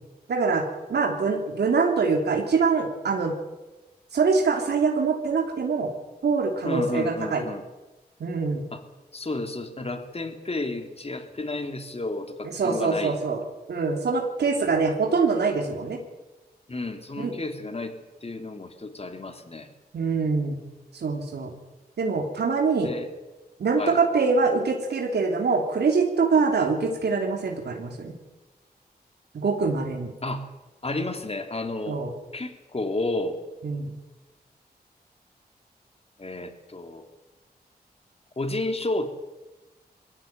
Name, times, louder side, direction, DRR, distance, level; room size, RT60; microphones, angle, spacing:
voice 1, 0.3-0.6 0.9-3.3 4.1-5.9 6.2-7.4 8.2-8.6 12.6-13.4 13.7-16.0 17.2-17.3 19.9-20.6 20.9-21.5 22.0-22.9 23.6-28.1 29.3-30.1 31.9-32.1 33.6-34.0, right 4 dB, 85° right, 2 dB, 3.1 m, -24 dB
voice 2, 6.6-7.6 8.7-8.8 9.1-13.1 16.7-19.7 22.8-23.1 23.8-24.0 30.2-30.5 30.8-32.0 32.3-33.4 36.2-37.0 38.4-39.1, left 2 dB, 35° left, 6 dB, 3.4 m, -31 dB
21.5 x 16.5 x 9.1 m, 1.1 s
cardioid pair, 55°, 17 cm